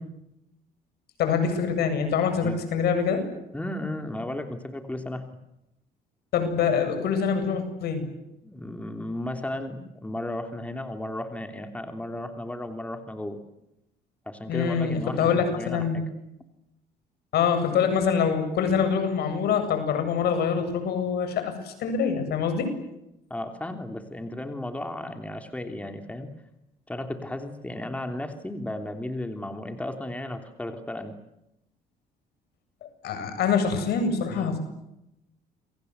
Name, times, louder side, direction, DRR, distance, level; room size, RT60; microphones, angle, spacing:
voice 1, 1.2-3.2 6.3-8.1 14.5-16.0 17.3-22.7 33.0-34.6, left 6 dB, 70° left, 8 dB, 7.8 m, -25 dB
voice 2, 3.5-5.2 8.4-13.4 14.3-16.0 23.3-26.3 26.9-31.2 34.3-34.6, left 1 dB, 10° left, 6 dB, 3.2 m, -34 dB
29.0 x 24.0 x 8.1 m, 0.86 s
cardioid pair, 110°, 17 cm